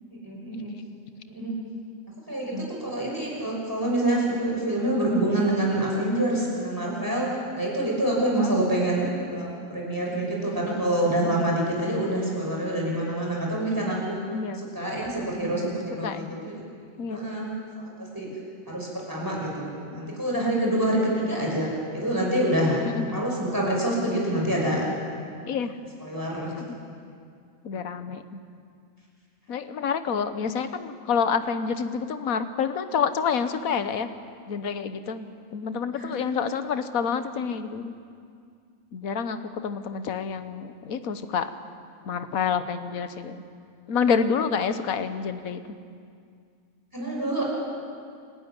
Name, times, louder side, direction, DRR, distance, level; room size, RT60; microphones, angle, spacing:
voice 1, 0.1-0.7 1.3-1.5 2.3-2.5 2.8-7.3 7.6-14.2 14.7-16.6 17.1-17.5 18.1-18.3 18.7-21.7 21.9-22.8 23.1-24.8 26.1-26.5 35.9-36.1 46.9-47.4, right 1 dB, 15° right, -3 dB, 6.2 m, -26 dB
voice 2, 14.3-14.6 16.0-16.3 17.0-17.2 20.9-21.0 22.8-23.3 24.4-24.6 25.5-25.8 26.5-26.8 27.6-28.4 29.5-34.1 34.5-37.9 38.9-41.5 42.0-43.4 43.9-45.8, left 6 dB, 85° left, 10 dB, 1.5 m, -28 dB
28.5 x 12.5 x 9.7 m, 2.3 s
omnidirectional pair, 1.4 m